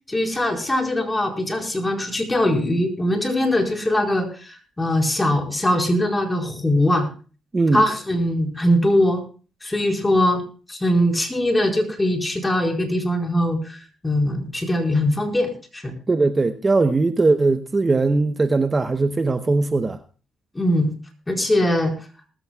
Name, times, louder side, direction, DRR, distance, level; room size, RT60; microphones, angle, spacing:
voice 1, 0.1-7.1 7.7-9.2 9.6-10.4 10.7-15.9 20.5-20.9 21.3-21.9, left 1 dB, 15° left, 4.5 m, -21 dB
voice 2, 7.5-7.8 16.1-20.0, right 3 dB, 30° right, 0.8 m, -19 dB
20.0 x 14.0 x 2.3 m
supercardioid pair, 70°, 0 cm